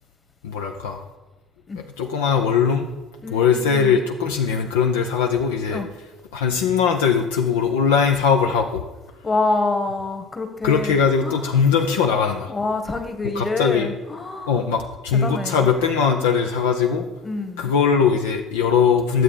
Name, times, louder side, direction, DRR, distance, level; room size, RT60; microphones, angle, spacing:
voice 1, 0.4-1.0 1.7-2.9 3.3-5.8 6.3-8.8 10.6-12.5 13.3-13.9 14.5-17.1 17.6-19.2, left 6 dB, 75° left, 3 dB, 0.6 m, -20 dB
voice 2, 3.2-4.0 5.7-5.9 9.2-11.6 12.5-14.6 15.2-15.7 17.2-17.7, left 3 dB, 30° left, 7 dB, 1.5 m, -27 dB
11.0 x 7.6 x 4.9 m, 1.1 s
figure-of-eight pair, 50°, 0 cm